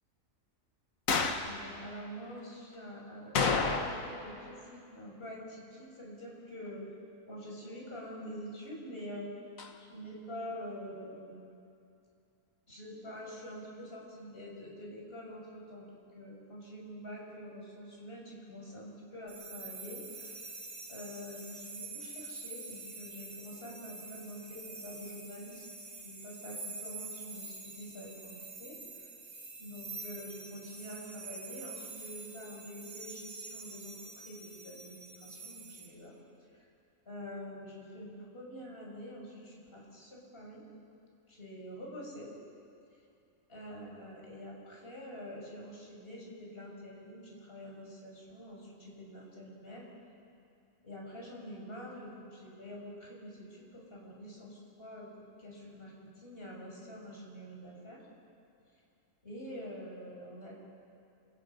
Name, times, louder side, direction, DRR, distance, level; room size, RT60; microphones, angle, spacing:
sound 1, 1.1-1.5 3.4-4.2 4.5-4.6 9.6-9.7, left 4 dB, 85° left, 1.9 m, -29 dB
voice 1, 1.4-6.9 7.3-9.3 9.8-11.4 12.7-15.9 16.1-20.4 20.9-25.6 25.9-29.1 29.6-36.2 36.5-36.6 37.1-40.6 41.3-42.3 43.5-49.9 50.8-58.0 59.2-60.5, equal, 45° left, -3 dB, 6.1 m, -46 dB
sound 2, 19.3-35.9, right 3 dB, 90° right, 4.6 m, -46 dB
29.0 x 27.0 x 5.7 m, 2.5 s
omnidirectional pair, 1.4 m